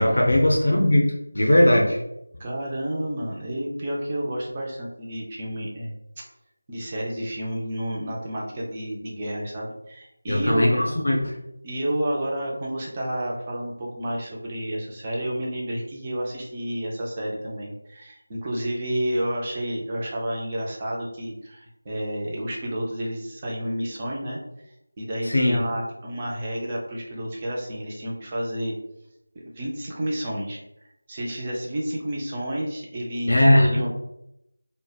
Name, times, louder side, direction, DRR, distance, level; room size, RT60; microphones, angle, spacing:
voice 1, 0.0-2.0 10.3-11.3 25.3-25.6 33.3-33.7, left 1 dB, 70° left, 0 dB, 0.5 m, -19 dB
voice 2, 2.4-5.9 6.7-10.9 11.6-24.4 25.0-28.7 29.3-30.6 31.1-33.9, right 1 dB, 20° right, -3 dB, 0.4 m, -30 dB
2.7 x 2.0 x 2.2 m, 0.85 s
figure-of-eight pair, 175°, 0 cm